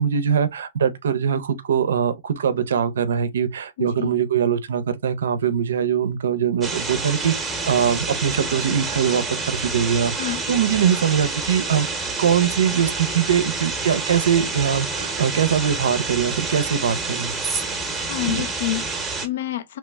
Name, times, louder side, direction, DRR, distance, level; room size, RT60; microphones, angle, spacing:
voice 1, 0.0-11.9 12.2-17.3 18.3-18.4, right 8 dB, 85° right, 0.5 m, -22 dB
voice 2, 3.8-4.2 10.2-10.4 18.0-19.8, left 14 dB, 70° left, 0.4 m, -28 dB
sound 1, 6.6-19.3, right 3 dB, 10° right, 0.7 m, -28 dB
3.0 x 2.1 x 3.3 m
hypercardioid pair, 140°, 0 cm